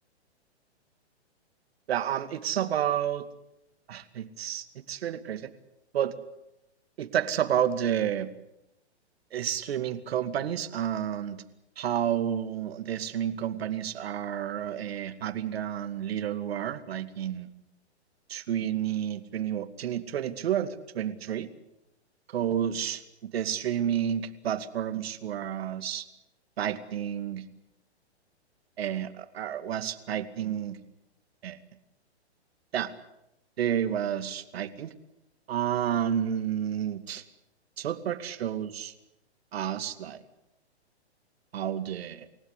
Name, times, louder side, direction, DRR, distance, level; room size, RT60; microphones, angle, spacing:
voice 1, 1.9-3.3 3.9-5.5 5.9-6.1 7.0-8.3 9.3-11.4 11.8-17.5 18.3-21.5 22.3-23.0 23.3-26.1 26.6-27.4 28.8-30.8 31.4-31.6 32.7-32.9 33.6-34.9 35.5-37.2 37.8-38.9 39.5-40.2 41.5-42.3, right 10 dB, 65° right, 10 dB, 2.3 m, -30 dB
28.5 x 16.5 x 8.5 m, 0.89 s
hypercardioid pair, 130°, 34 cm